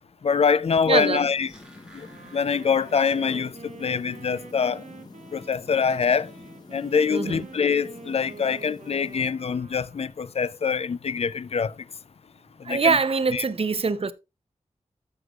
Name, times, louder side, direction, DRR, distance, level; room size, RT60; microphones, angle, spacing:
voice 1, 0.2-1.5 2.3-3.5 3.8-4.8 5.3-6.3 6.7-11.7 12.7-13.0 13.3-13.4, left 6 dB, 55° left, 0.5 m, -24 dB
voice 2, 0.9-1.3 7.1-7.5 12.6-14.1, right 4 dB, 50° right, 0.7 m, -23 dB
sound 1, 1.1-9.3, left 2 dB, 35° left, 1.1 m, -47 dB
sound 2, 1.2-3.5 3.8-3.9, right 1 dB, 5° right, 2.9 m, -54 dB
Wind instrument woodwind instrument, 2.0-10.6, right 5 dB, 75° right, 1.0 m, -47 dB
14.0 x 6.4 x 2.4 m
wide cardioid pair, 85°, 12 cm